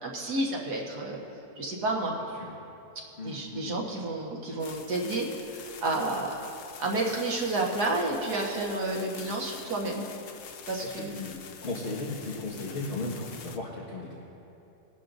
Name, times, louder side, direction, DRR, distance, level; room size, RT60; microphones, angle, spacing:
voice 1, 0.0-1.2 1.6-2.1 3.2-6.4 6.8-10.1 10.7-11.1, right 2 dB, 90° right, -2 dB, 2.0 m, -30 dB
voice 2, 2.2-2.5 3.2-3.8 10.8-11.3 11.6-14.1, left 2 dB, 45° left, -7 dB, 1.8 m, -36 dB
sound 1, 4.6-13.6, left 7 dB, 65° left, 0.6 m, -46 dB
21.5 x 11.0 x 2.7 m, 2.9 s
omnidirectional pair, 1.6 m